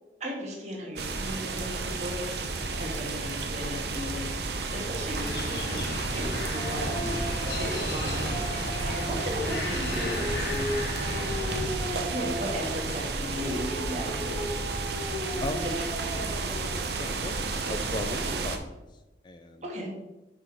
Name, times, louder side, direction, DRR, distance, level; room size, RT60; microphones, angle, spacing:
voice 1, 0.2-2.4 2.8-11.2 11.9-14.8 15.6-15.7 16.0-16.4 19.6-19.9, equal, 40° right, -1 dB, 1.8 m, -36 dB
sound 1, 1.0-18.6, right 3 dB, 65° right, 0.8 m, -32 dB
sound 2, 5.2-11.7, left 1 dB, 60° left, 1.4 m, -34 dB
Dog, 6.6-9.4 9.8-12.9 13.3-16.9, equal, 10° right, 2.3 m, -37 dB
voice 2, 7.0-7.4 15.4-15.7 17.0-18.7 19.2-19.7, left 2 dB, 25° left, 8 dB, 0.4 m, -37 dB
6.1 x 5.0 x 4.7 m, 1.0 s
head